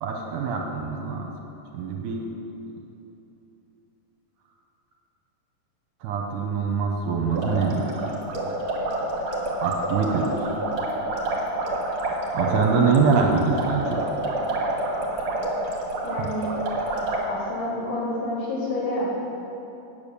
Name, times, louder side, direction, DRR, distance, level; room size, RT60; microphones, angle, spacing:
voice 1, 0.0-1.3 1.7-2.3 6.0-8.1 9.6-10.6 12.3-14.0 16.2-16.3, right 5 dB, 75° right, 1 dB, 2.4 m, -24 dB
sound 1, 7.3-17.2, right 2 dB, 50° right, 2.6 m, -28 dB
voice 2, 16.0-16.5 17.2-19.1, left 1 dB, 75° left, -8 dB, 4.7 m, -29 dB
9.1 x 8.7 x 6.8 m, 3.0 s
omnidirectional pair, 3.9 m